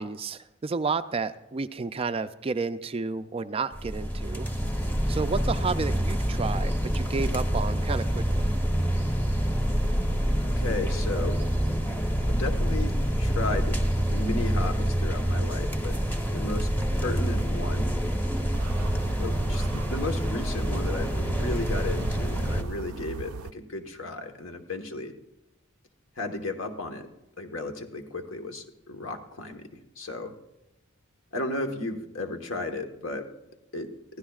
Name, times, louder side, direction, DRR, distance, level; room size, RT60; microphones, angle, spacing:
voice 1, 0.0-4.5 5.1-8.5, right 4 dB, 25° right, 11 dB, 0.4 m, -31 dB
sound 1, 3.7-22.6, equal, 10° left, 1.0 m, -27 dB
voice 2, 10.6-11.4 12.3-13.8 14.1-16.0 16.3-16.7 17.0-17.9 19.2-25.1 26.2-27.1 27.4-29.7 30.0-30.3 31.3-33.3 33.7-33.9, left 2 dB, 65° left, 5 dB, 1.3 m, -34 dB
sound 2, 18.5-23.5, right 5 dB, 90° right, 0.5 m, -38 dB
22.5 x 15.5 x 2.4 m, 0.95 s
head